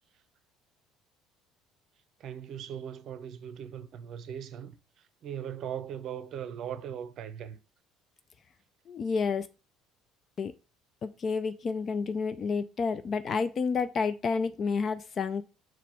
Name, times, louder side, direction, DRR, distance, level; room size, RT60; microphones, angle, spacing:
voice 1, 2.2-4.7 5.2-7.6, right 9 dB, 50° right, 0.6 m, -39 dB
voice 2, 8.9-9.5 10.4-10.5 11.0-15.4, left 5 dB, 40° left, 0.4 m, -30 dB
6.1 x 4.7 x 3.4 m
figure-of-eight pair, 55°, 0 cm